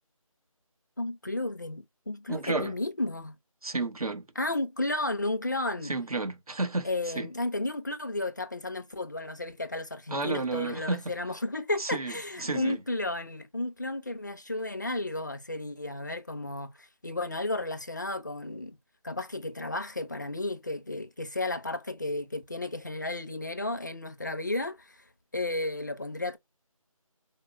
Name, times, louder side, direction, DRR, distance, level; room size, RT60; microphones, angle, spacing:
voice 1, 1.0-3.3 4.4-5.9 6.8-18.8 19.0-25.0 25.3-26.4, left 2 dB, 35° left, 0.4 m, -33 dB
voice 2, 2.3-2.7 3.6-4.3 5.8-6.9 7.2-7.3 10.1-11.0 11.8-12.8, right 3 dB, 85° right, 0.9 m, -31 dB
4.1 x 2.1 x 2.3 m
figure-of-eight pair, 165°, 18 cm